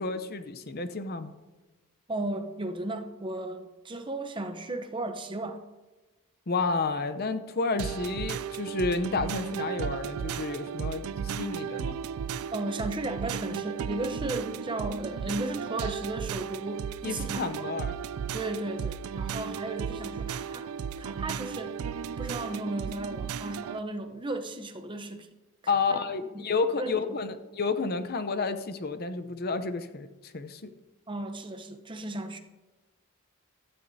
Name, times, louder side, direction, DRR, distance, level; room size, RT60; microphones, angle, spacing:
voice 1, 0.0-1.3 6.5-12.0 17.0-17.9 25.7-30.7, left 4 dB, 45° left, 0.7 m, -31 dB
voice 2, 2.1-5.6 12.5-17.7 18.3-20.7 21.0-21.8 22.2-25.3 25.9-26.0 26.3-26.5 26.7-27.2 31.1-32.4, right 2 dB, 25° right, 0.8 m, -35 dB
sound 1, 7.8-23.8, right 7 dB, 85° right, 0.4 m, -35 dB
16.0 x 12.5 x 2.7 m
head